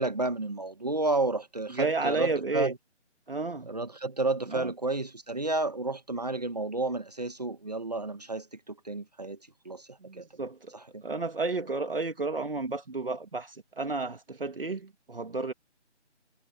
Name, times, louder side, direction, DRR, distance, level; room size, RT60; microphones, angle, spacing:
voice 1, 0.0-2.7 3.7-9.4 9.6-9.9 10.2-10.3, right 2 dB, 35° right, 1.6 m, -31 dB
voice 2, 1.7-2.7 3.3-3.7 4.5-4.7 10.0-10.7 11.0-15.5, right 3 dB, 50° right, 2.3 m, -32 dB
figure-of-eight pair, 180°, 36 cm